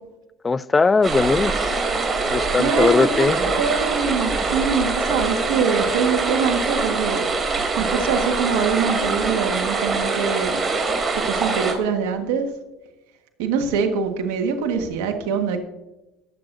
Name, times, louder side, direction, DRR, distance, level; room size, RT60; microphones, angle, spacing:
voice 1, 0.4-1.8 2.3-3.4, left 4 dB, 20° left, 0.4 m, -19 dB
sound 1, 1.0-11.7, right 3 dB, 30° right, 3.0 m, -23 dB
voice 2, 2.6-3.3 3.6-7.2 7.8-10.6 11.1-12.5 13.4-15.6, right 6 dB, 80° right, 1.5 m, -24 dB
20.5 x 7.6 x 2.6 m
supercardioid pair, 90°, 0 cm